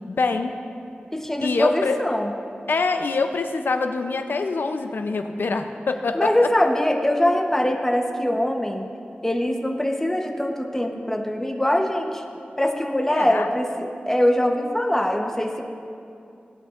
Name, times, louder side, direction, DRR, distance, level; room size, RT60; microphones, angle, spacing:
voice 1, 0.1-0.6 1.4-2.0 2.7-6.3 13.1-13.5, left 4 dB, 85° left, 7 dB, 0.6 m, -25 dB
voice 2, 1.1-2.3 6.1-8.9 9.2-12.2 12.6-15.6, left 1 dB, 10° left, 2 dB, 1.0 m, -22 dB
17.0 x 8.6 x 2.5 m, 2.6 s
wide cardioid pair, 70°, 3 cm